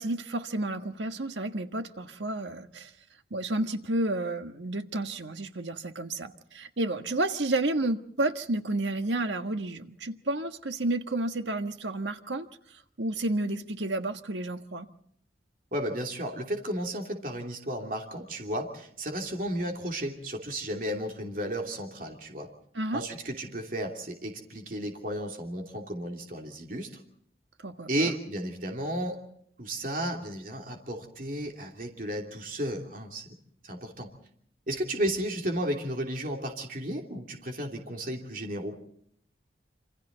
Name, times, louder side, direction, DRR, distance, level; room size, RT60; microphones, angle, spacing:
voice 1, 0.0-2.9 3.3-12.5 13.0-14.9 22.7-23.0 27.6-28.1, right 2 dB, 85° right, 7 dB, 1.5 m, -31 dB
voice 2, 15.7-22.5 22.9-26.9 27.9-29.2 29.6-33.3 33.6-34.1 34.7-38.8, right 1 dB, 50° right, 2 dB, 2.9 m, -33 dB
27.5 x 26.0 x 4.0 m, 0.68 s
head